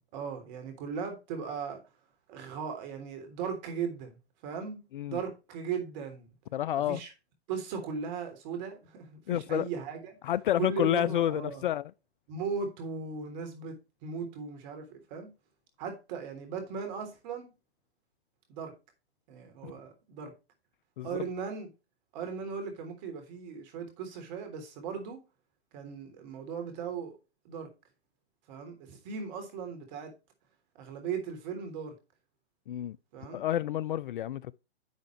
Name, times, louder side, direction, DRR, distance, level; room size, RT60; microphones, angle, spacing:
voice 1, 0.0-1.8 2.3-4.2 4.4-4.8 5.1-6.3 6.8-7.1 7.5-10.2 10.6-11.6 12.3-15.3 15.8-17.5 18.5-18.7 19.3-20.3 21.0-21.7 22.1-25.2 25.7-27.2 27.4-27.7 28.5-30.1 30.7-31.9 33.1-33.4, right 6 dB, 40° right, 3.4 m, -37 dB
voice 2, 6.5-7.0 9.3-9.7 10.2-11.8 19.6-19.7 21.0-21.1 32.7-33.0 33.3-34.5, left 12 dB, 50° left, 0.4 m, -29 dB
10.5 x 6.4 x 3.2 m
hypercardioid pair, 125°, 33 cm